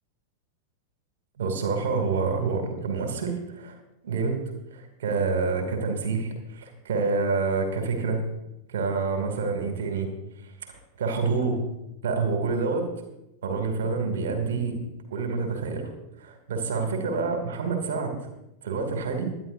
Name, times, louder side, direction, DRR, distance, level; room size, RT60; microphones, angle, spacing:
voice 1, 1.4-3.7 4.0-4.4 4.7-8.2 8.7-10.1 10.4-11.6 12.0-12.9 13.4-14.8 15.1-15.9 16.2-18.2 18.6-19.3, right 4 dB, 60° right, 4 dB, 2.6 m, -27 dB
23.5 x 10.5 x 2.7 m, 0.89 s
figure-of-eight pair, 90°, 0 cm